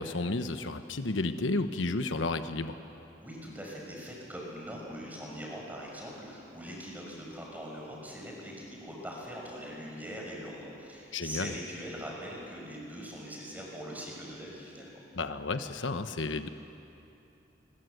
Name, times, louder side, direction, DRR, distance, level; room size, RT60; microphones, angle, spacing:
voice 1, 0.0-2.8 11.1-11.5 15.1-16.5, left 2 dB, 85° left, 9 dB, 1.1 m, -32 dB
voice 2, 3.2-15.0, equal, 10° right, -2 dB, 5.8 m, -42 dB
28.0 x 22.0 x 8.1 m, 2.9 s
head